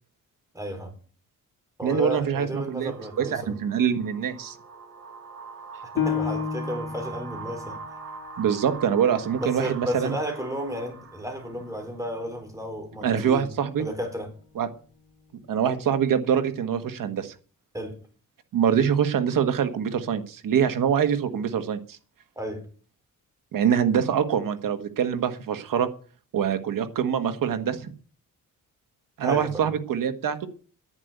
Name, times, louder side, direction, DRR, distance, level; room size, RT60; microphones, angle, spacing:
voice 1, 0.5-0.9 1.8-3.6 5.9-8.0 9.4-13.5 13.8-14.3 17.7-18.0 22.4-22.7 29.2-29.7, equal, 10° right, 4.3 m, -33 dB
voice 2, 1.8-2.9 3.2-4.6 8.4-10.1 13.0-13.8 14.5-14.7 15.5-17.3 18.5-22.0 23.5-25.9 26.3-27.9 29.2-30.5, right 8 dB, 75° right, 1.5 m, -24 dB
sound 1, 2.7-12.1, right 5 dB, 45° right, 2.5 m, -43 dB
Piano, 6.0-11.1 11.6-11.7 12.3-12.8, left 7 dB, 90° left, 1.7 m, -34 dB
10.5 x 9.4 x 8.0 m
cardioid pair, 110°, 33 cm